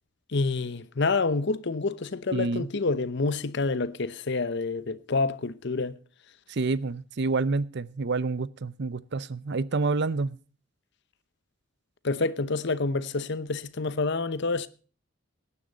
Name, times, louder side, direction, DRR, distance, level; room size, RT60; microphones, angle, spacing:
voice 1, 0.3-6.0 12.0-14.7, left 3 dB, 55° left, 0.8 m, -28 dB
voice 2, 2.3-2.7 6.5-10.4, right 3 dB, 55° right, 0.6 m, -28 dB
17.5 x 10.0 x 4.0 m
head